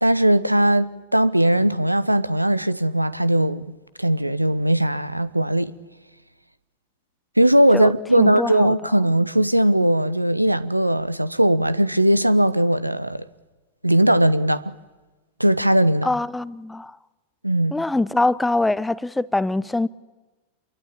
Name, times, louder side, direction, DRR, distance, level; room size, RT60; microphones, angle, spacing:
voice 1, 0.0-3.6 4.0-5.7 7.4-13.3 13.8-14.7 15.4-16.1 17.4-17.7, right 1 dB, 85° right, 0.9 m, -19 dB
voice 2, 8.2-8.7 16.0-17.0 17.7-19.9, left 2 dB, 5° left, 0.8 m, -23 dB
27.5 x 23.0 x 8.7 m
figure-of-eight pair, 90°, 0 cm